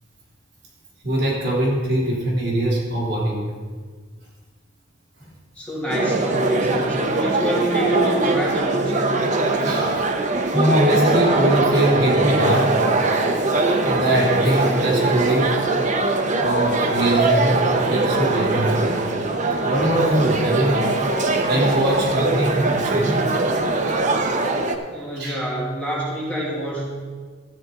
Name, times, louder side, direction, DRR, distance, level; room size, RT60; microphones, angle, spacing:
voice 1, 1.0-3.5 9.6-10.0 10.5-12.8 13.3-15.6 16.4-18.8 19.6-21.0 21.5-23.4 23.7-23.9 24.5-24.7 25.1-25.4, right 1 dB, 65° right, -4 dB, 3.1 m, -22 dB
voice 2, 5.6-9.1 24.9-26.8, right 1 dB, 5° left, -7 dB, 2.6 m, -26 dB
sound 1, 5.9-24.8, right 2 dB, 40° right, 0.8 m, -21 dB
13.0 x 8.7 x 3.8 m, 1.5 s
head